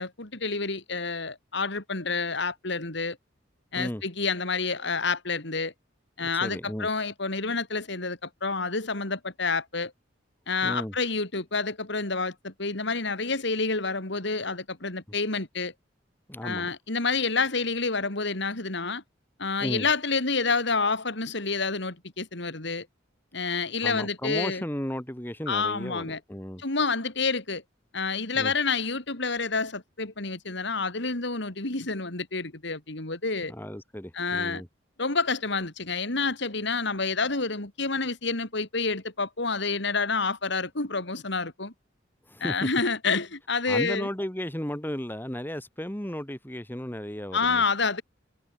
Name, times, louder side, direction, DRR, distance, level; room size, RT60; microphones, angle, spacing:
voice 1, 0.0-3.2 3.7-5.7 6.2-9.9 10.5-15.7 16.4-19.0 19.4-22.9 23.3-24.6 25.5-26.2 26.6-27.6 27.9-33.5 34.1-34.6 35.0-41.7 42.4-44.1 47.3-48.0, left 4 dB, 65° left, 3.5 m, -28 dB
voice 2, 6.2-6.9 10.6-10.9 16.3-16.7 19.6-19.9 23.8-26.6 28.3-28.5 33.5-34.7 42.3-42.7 43.7-47.6, equal, 10° left, 3.2 m, -34 dB
head